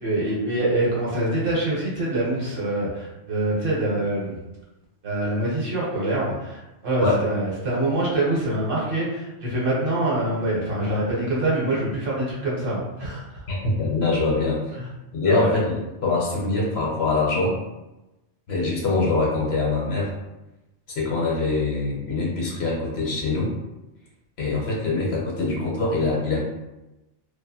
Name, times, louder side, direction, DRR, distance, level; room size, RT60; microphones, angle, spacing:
voice 1, 0.0-4.4 5.0-13.4 14.8-14.9 15.3-15.5, right 1 dB, 55° right, -5 dB, 0.9 m, -25 dB
voice 2, 13.5-14.6 15.1-17.6 18.5-20.1 21.0-23.5 24.4-26.4, left 3 dB, 65° left, -4 dB, 0.9 m, -23 dB
2.5 x 2.3 x 2.6 m, 0.99 s
omnidirectional pair, 1.2 m